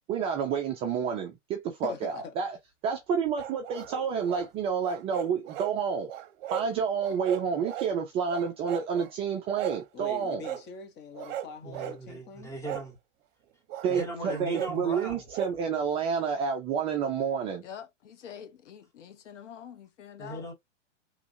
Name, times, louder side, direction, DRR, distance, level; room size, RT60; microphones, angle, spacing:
voice 1, 0.1-2.6 2.8-6.1 6.5-10.4 13.8-17.6, right 6 dB, 15° right, 0.3 m, -29 dB
voice 2, 1.8-2.3 9.9-12.5, left 6 dB, 30° left, 0.9 m, -42 dB
sound 1, 3.4-4.5 4.8-5.7 6.1-6.7 7.0-8.0 8.3-9.1 9.6-9.9 10.4-10.6 11.1-12.0 12.6-12.9 13.7-15.5, right 12 dB, 45° right, 0.8 m, -37 dB
voice 3, 11.6-13.0 13.9-15.2 20.2-20.5, right 1 dB, 10° left, 1.0 m, -38 dB
voice 4, 17.6-20.4, left 8 dB, 70° left, 0.8 m, -46 dB
3.1 x 2.4 x 2.6 m
hypercardioid pair, 115°, 37 cm